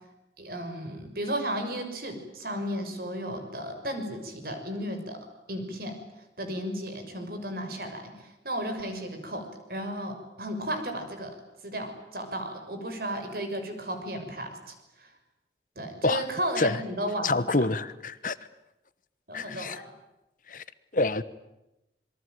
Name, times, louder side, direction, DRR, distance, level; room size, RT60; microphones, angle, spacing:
voice 1, 0.4-5.2 5.5-5.9 6.4-11.3 11.6-15.1 15.8-17.5 19.3-19.8, right 1 dB, 55° right, 6.3 m, -34 dB
voice 2, 17.2-18.3 19.3-19.8 20.5-20.6 20.9-21.2, left 3 dB, 50° left, 1.1 m, -27 dB
27.5 x 23.0 x 9.3 m
head